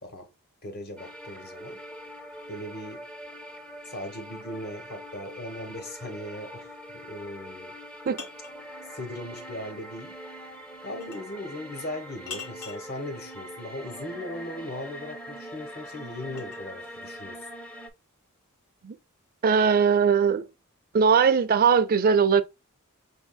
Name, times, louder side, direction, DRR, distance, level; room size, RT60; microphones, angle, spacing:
voice 1, 0.6-1.8 2.5-3.0 3.8-6.7 7.0-7.8 8.9-10.1 10.8-17.5, left 1 dB, 45° left, 1.1 m, -38 dB
sound 1, 1.0-17.9, equal, 5° left, 0.6 m, -43 dB
sound 2, 7.6-8.6 11.0-11.3 12.3-12.9 15.1-16.7, left 6 dB, 75° left, 1.1 m, -43 dB
voice 2, 19.4-20.4 20.9-22.4, right 6 dB, 40° right, 0.4 m, -20 dB
5.5 x 3.6 x 2.2 m
head